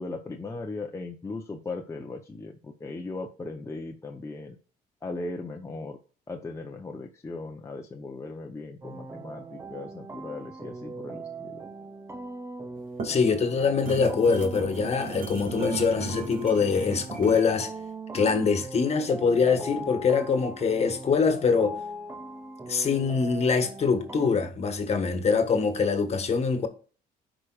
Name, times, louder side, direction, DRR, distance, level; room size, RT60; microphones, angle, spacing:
voice 1, 0.0-4.6 5.0-6.0 6.3-11.6, left 3 dB, 15° left, 0.8 m, -38 dB
sound 1, 8.8-24.3, right 2 dB, 15° right, 0.8 m, -40 dB
sound 2, 12.8-17.5, right 4 dB, 55° right, 2.3 m, -37 dB
voice 2, 13.0-17.7 18.1-21.8 22.7-26.7, left 5 dB, 40° left, 1.4 m, -24 dB
14.0 x 5.0 x 2.4 m
cardioid pair, 110°, 17 cm